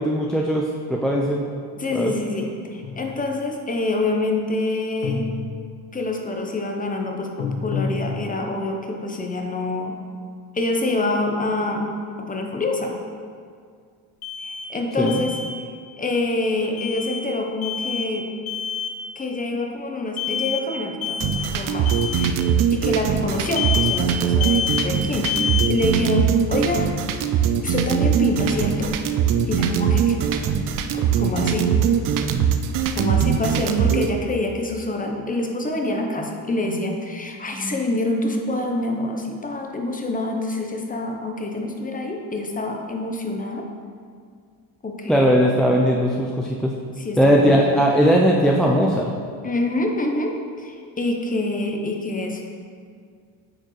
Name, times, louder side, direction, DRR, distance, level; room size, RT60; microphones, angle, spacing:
voice 1, 0.0-1.4 1.9-2.1 15.0-15.2 37.5-37.8 45.1-46.7 47.2-49.1, equal, ahead, -2 dB, 0.3 m, -19 dB
voice 2, 1.8-5.3 5.9-10.0 10.5-11.9 12.2-13.0 14.4-15.7 16.0-18.2 19.2-22.4 22.7-25.4 25.7-26.9 27.6-28.9 29.5-30.3 30.9-31.7 32.9-43.6 44.8-45.5 47.0-47.6 49.4-50.3 50.6-52.5, left 2 dB, 20° left, 2 dB, 0.8 m, -26 dB
sound 1, 2.8-3.4 5.0-6.0 7.4-8.7, left 4 dB, 85° left, 0.9 m, -29 dB
Alarm, 14.2-14.7 15.1-15.5 16.8-17.2 17.6-18.1 18.5-19.0 20.2-20.7 21.0-21.5 21.9-22.3 23.6-24.1 24.4-24.9 25.3-25.7, left 8 dB, 60° left, 0.8 m, -27 dB
sound 2, 21.2-34.1, right 8 dB, 50° right, 0.5 m, -21 dB
8.8 x 4.5 x 3.2 m, 2.1 s
cardioid pair, 105°, 41 cm